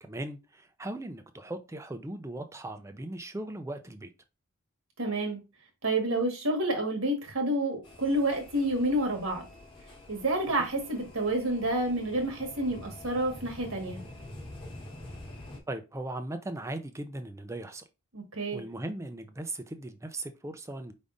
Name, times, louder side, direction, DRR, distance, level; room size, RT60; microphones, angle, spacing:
voice 1, 0.0-4.1 15.7-17.8 18.5-20.9, right 1 dB, 15° right, 0.4 m, -38 dB
voice 2, 5.0-5.4 5.8-9.4 10.1-14.0 18.1-18.6, right 1 dB, 75° right, 1.6 m, -29 dB
sound 1, 7.8-15.6, left 1 dB, 25° left, 1.1 m, -47 dB
5.1 x 3.5 x 2.6 m
head